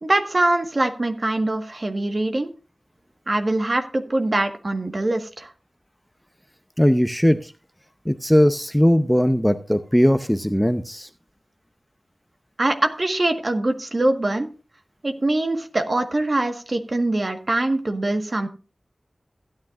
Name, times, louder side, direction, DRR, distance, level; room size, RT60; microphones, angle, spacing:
voice 1, 0.0-2.5 3.3-5.5 12.6-14.5 15.0-18.5, right 2 dB, 45° right, 6 dB, 1.5 m, -23 dB
voice 2, 6.8-7.4 8.1-11.1, equal, ahead, 9 dB, 0.7 m, -19 dB
15.5 x 9.6 x 2.5 m, 0.33 s
wide cardioid pair, 60°, 0 cm